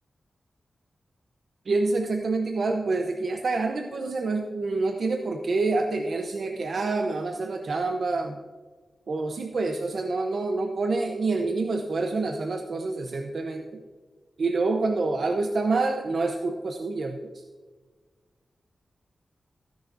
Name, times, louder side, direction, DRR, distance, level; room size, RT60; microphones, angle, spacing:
voice 1, 1.6-8.4 9.1-13.8 14.4-17.4, right 3 dB, 60° right, 4 dB, 0.8 m, -27 dB
15.5 x 10.5 x 2.7 m, 1.4 s
wide cardioid pair, 100°, 0 cm